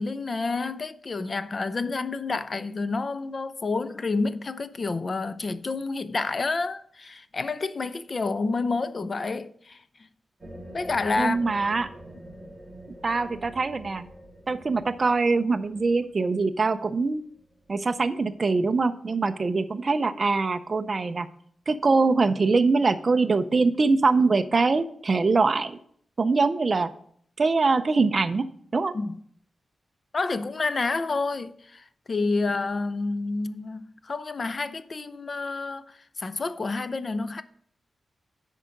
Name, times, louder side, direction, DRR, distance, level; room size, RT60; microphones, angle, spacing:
voice 1, 0.0-9.8 10.7-11.5 28.9-29.2 30.1-37.4, left 3 dB, 35° left, 0.4 m, -29 dB
sound 1, 10.4-17.7, right 1 dB, 5° right, 2.5 m, -46 dB
voice 2, 11.2-11.9 13.0-14.1 14.5-17.2 17.7-21.3 21.7-25.8 26.2-26.9 27.4-28.5 28.7-28.9, right 3 dB, 30° right, 0.4 m, -23 dB
10.0 x 4.5 x 5.1 m
wide cardioid pair, 180°, 0 cm